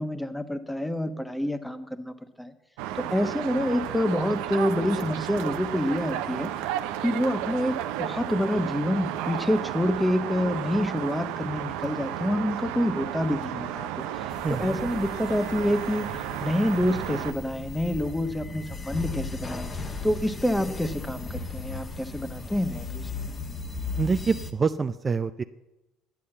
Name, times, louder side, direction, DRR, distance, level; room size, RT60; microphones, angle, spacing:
voice 1, 0.0-2.5 3.0-6.5 7.0-14.2 14.6-19.7 20.0-23.1, left 1 dB, 5° left, 9 dB, 1.2 m, -27 dB
sound 1, 2.8-17.3, right 11 dB, 75° right, 0.7 m, -33 dB
sound 2, 14.3-24.5, left 3 dB, 30° left, 1.3 m, -36 dB
voice 2, 14.4-14.8 24.0-25.4, right 5 dB, 30° right, 10 dB, 0.5 m, -26 dB
10.5 x 8.3 x 7.8 m, 0.99 s
hypercardioid pair, 65°, 0 cm